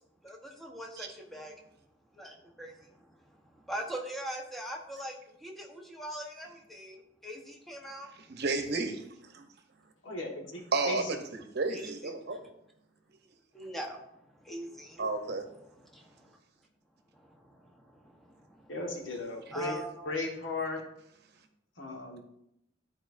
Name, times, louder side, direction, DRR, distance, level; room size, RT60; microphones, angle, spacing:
voice 1, 0.2-1.5 2.1-8.1 11.7-12.4 13.5-15.1 15.8-16.4 17.1-18.7 19.5-20.1, right 1 dB, ahead, 0 dB, 0.9 m, -42 dB
voice 2, 8.3-9.0 9.3-9.5 10.7-12.5 15.0-15.5, right 3 dB, 60° right, 6 dB, 0.8 m, -32 dB
voice 3, 10.0-11.2 18.7-19.7 20.0-20.8 21.8-22.2, left 2 dB, 85° left, 1 dB, 1.3 m, -36 dB
11.5 x 4.4 x 2.5 m, 0.78 s
head